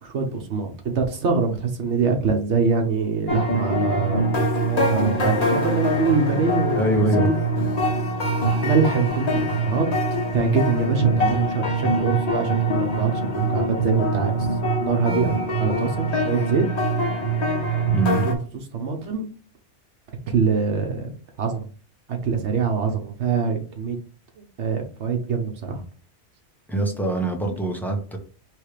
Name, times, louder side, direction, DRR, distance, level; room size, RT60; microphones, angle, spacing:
voice 1, 0.0-6.9 7.3-7.4 8.6-9.9 10.3-14.5 14.8-16.6 18.2-19.2 20.3-21.1 21.4-21.7 22.1-24.0 24.4-25.8, right 5 dB, 80° right, 4 dB, 1.2 m, -24 dB
sound 1, 3.3-18.3, right 1 dB, 35° left, 1.2 m, -23 dB
voice 2, 6.8-7.3 15.0-15.3 17.9-18.2 26.7-28.2, right 2 dB, ahead, 2 dB, 0.8 m, -24 dB
3.3 x 3.2 x 4.9 m, 0.38 s
omnidirectional pair, 1.2 m